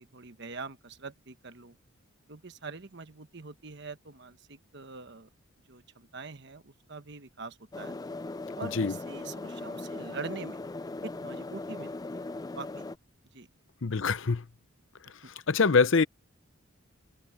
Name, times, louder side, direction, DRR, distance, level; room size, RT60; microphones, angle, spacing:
voice 1, 0.0-1.8 2.3-5.3 5.7-8.0 8.6-10.6 11.0-12.2 12.5-12.9 13.3-13.5 15.2-15.3, right 3 dB, 55° right, 1.2 m, -44 dB
sound 1, 7.7-13.0, left 2 dB, 15° left, 0.3 m, -39 dB
voice 2, 13.8-14.4 15.5-16.0, left 4 dB, 60° left, 0.7 m, -24 dB
head